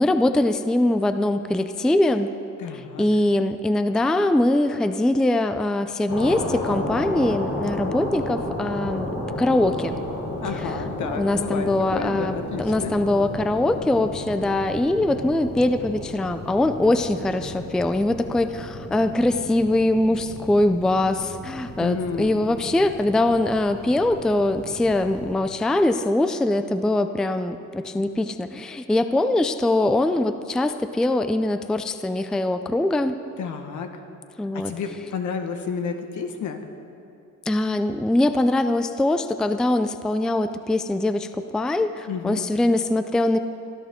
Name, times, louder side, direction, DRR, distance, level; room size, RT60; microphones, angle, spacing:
voice 1, 0.0-2.3 2.7-10.0 10.4-33.2 34.4-35.1 37.5-43.4, left 1 dB, ahead, 9 dB, 0.3 m, -22 dB
voice 2, 2.6-3.1 10.4-12.9 21.8-22.5 28.0-28.1 33.4-34.0 34.5-36.7 42.1-42.4, left 6 dB, 75° left, 6 dB, 1.4 m, -31 dB
sound 1, 6.1-25.3, left 1 dB, 50° left, 3.7 m, -33 dB
23.5 x 13.5 x 3.6 m, 2.6 s
cardioid pair, 160°, 30 cm